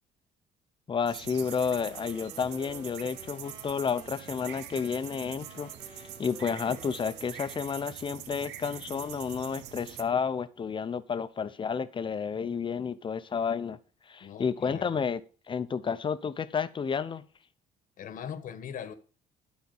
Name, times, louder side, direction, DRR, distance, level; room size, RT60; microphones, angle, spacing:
voice 1, 0.9-13.8 14.1-15.2 15.5-17.2, left 6 dB, 30° left, 0.7 m, -31 dB
sound 1, 1.0-10.0, right 11 dB, 85° right, 0.8 m, -44 dB
sound 2, 1.3-8.3, right 1 dB, 25° right, 2.8 m, -52 dB
voice 2, 14.2-15.0 18.0-18.9, left 8 dB, 50° left, 1.2 m, -40 dB
11.5 x 4.3 x 5.5 m
cardioid pair, 110°, 17 cm